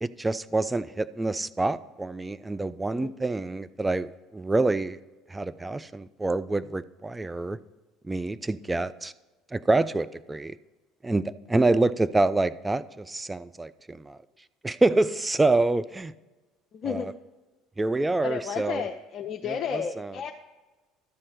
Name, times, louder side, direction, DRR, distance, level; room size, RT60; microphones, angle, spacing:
voice 1, 0.0-5.0 5.3-7.6 8.1-9.1 9.5-10.6 11.0-14.2 14.6-16.1 16.9-17.0 17.8-18.8 19.7-20.1, right 2 dB, 15° right, 0.4 m, -26 dB
voice 2, 16.7-17.1 18.2-20.3, left 7 dB, 50° left, 0.5 m, -32 dB
12.5 x 4.3 x 6.5 m
hypercardioid pair, 60°, 0 cm